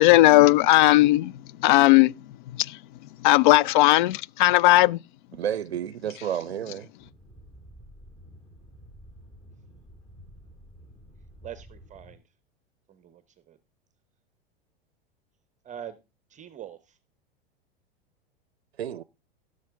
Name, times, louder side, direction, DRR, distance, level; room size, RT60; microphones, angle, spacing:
voice 1, 0.0-1.3 1.6-2.1 2.6-2.8 3.2-5.0, left 17 dB, 55° left, 0.4 m, -17 dB
voice 2, 5.3-6.9 18.8-19.0, right 9 dB, 85° right, 0.5 m, -31 dB
sound 1, 7.0-12.2, equal, 15° left, 2.5 m, -50 dB
voice 3, 11.4-12.2 12.9-13.2 13.5-13.6 15.6-16.0 16.3-17.0, right 10 dB, 25° right, 0.8 m, -42 dB
16.5 x 6.4 x 3.5 m
figure-of-eight pair, 90°, 31 cm